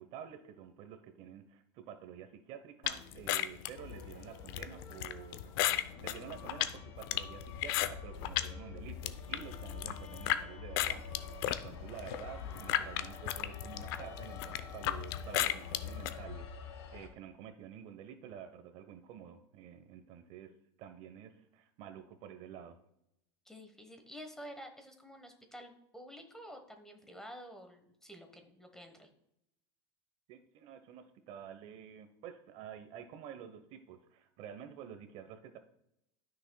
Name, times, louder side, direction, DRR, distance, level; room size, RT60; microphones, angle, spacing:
voice 1, 0.0-22.8 30.3-35.6, right 9 dB, 50° right, 9 dB, 0.9 m, -50 dB
sound 1, 2.8-8.5 8.9-10.4 10.8-16.1, left 13 dB, 65° left, 0.6 m, -34 dB
sound 2, 3.7-17.1, left 6 dB, 85° left, 1.5 m, -46 dB
voice 2, 23.4-29.1, equal, 5° left, 5 dB, 1.2 m, -50 dB
13.0 x 6.2 x 2.3 m, 0.79 s
supercardioid pair, 135°, 14 cm